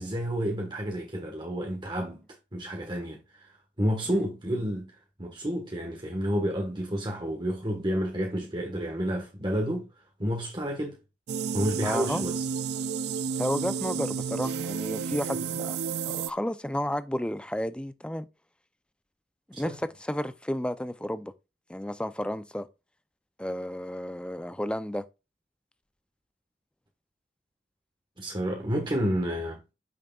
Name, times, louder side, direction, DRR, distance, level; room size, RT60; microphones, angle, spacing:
voice 1, 0.0-2.2 2.5-3.5 3.8-4.9 5.2-9.9 10.2-11.0 11.5-12.4 19.5-19.8 28.2-29.6, equal, 25° right, 1.4 m, -30 dB
sound 1, 11.3-16.3, right 6 dB, 65° right, 0.3 m, -31 dB
voice 2, 11.8-12.2 13.4-15.8 16.1-18.3 19.5-21.3 21.7-22.7 23.4-25.0, equal, 5° left, 0.5 m, -32 dB
8.8 x 6.5 x 2.4 m
head